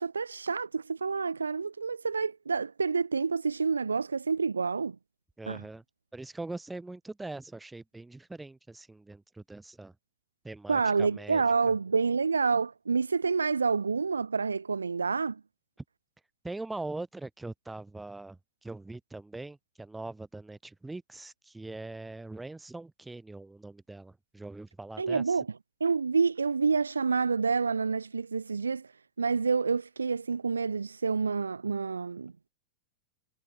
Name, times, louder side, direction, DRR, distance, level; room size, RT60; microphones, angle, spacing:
voice 1, 0.0-5.0 5.5-5.6 10.7-15.4 25.0-25.5 25.8-28.9 29.2-32.3, right 5 dB, 75° right, 0.4 m, -28 dB
voice 2, 5.4-5.8 6.1-9.9 10.4-11.7 16.4-25.4, right 2 dB, 5° right, 1.3 m, -42 dB
figure-of-eight pair, 90°, 0 cm